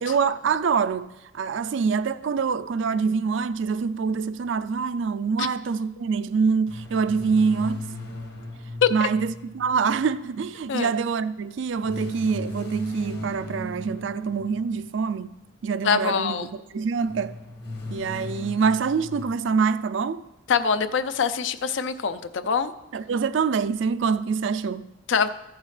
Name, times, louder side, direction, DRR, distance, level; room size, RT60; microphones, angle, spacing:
voice 1, 0.0-7.8 8.9-17.4 17.9-20.3 22.9-24.9, right 5 dB, 70° right, 0.4 m, -25 dB
sound 1, 6.7-10.2 11.8-14.9 17.0-19.2, equal, 55° left, 1.4 m, -36 dB
voice 2, 15.8-16.5 20.5-22.7 25.1-25.3, left 6 dB, 70° left, 0.5 m, -24 dB
14.0 x 7.2 x 3.3 m
head